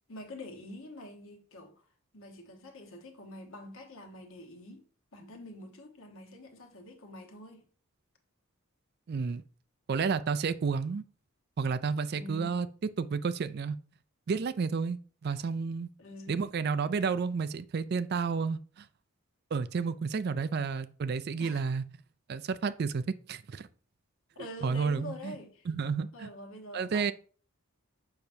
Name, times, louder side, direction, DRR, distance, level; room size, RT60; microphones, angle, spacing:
voice 1, 0.1-1.7 2.1-4.8 5.1-7.7 12.1-12.6 16.0-16.5 21.4-21.7 24.3-25.7 26.1-27.1, left 1 dB, 60° left, 1.2 m, -46 dB
voice 2, 9.1-9.4 9.9-11.0 11.6-12.7 13.0-13.8 14.3-15.9 16.3-18.9 19.5-21.8 22.3-23.0 23.3-23.7 24.6-25.3 25.7-26.3 26.7-27.1, right 5 dB, 45° right, 0.3 m, -31 dB
6.7 x 5.8 x 2.7 m
head